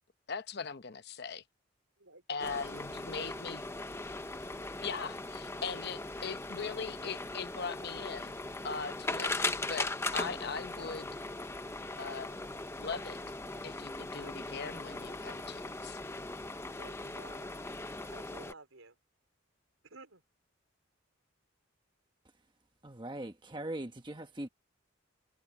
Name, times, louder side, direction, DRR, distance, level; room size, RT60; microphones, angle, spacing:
voice 1, 0.3-1.4 2.3-3.6 4.8-8.4 8.6-11.2 12.0-12.5 12.8-13.2 13.6-16.0, left 5 dB, 50° left, 0.9 m, -40 dB
voice 2, 2.0-2.6 2.9-3.3 16.8-17.6 18.1-19.0 19.8-20.2, right 3 dB, 85° right, 4.6 m, -53 dB
sound 1, 2.4-18.5, left 2 dB, 15° left, 0.7 m, -39 dB
voice 3, 22.8-24.5, right 1 dB, 25° right, 1.3 m, -40 dB
head